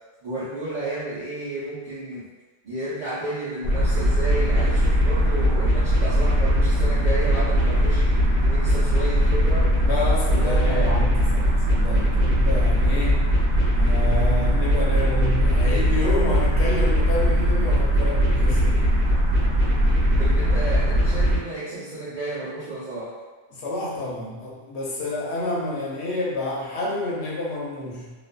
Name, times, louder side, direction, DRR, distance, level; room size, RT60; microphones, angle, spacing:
voice 1, 0.2-2.3 2.6-8.0 8.5-9.7 10.3-10.9 20.2-23.1, right 2 dB, 50° right, -13 dB, 0.7 m, -32 dB
sound 1, 3.6-21.4, equal, 90° right, 0.9 m, -20 dB
voice 2, 9.9-13.3 13.7-18.8 23.6-28.1, left 2 dB, 80° left, -4 dB, 0.9 m, -29 dB
2.5 x 2.3 x 2.2 m, 1.3 s
omnidirectional pair, 1.1 m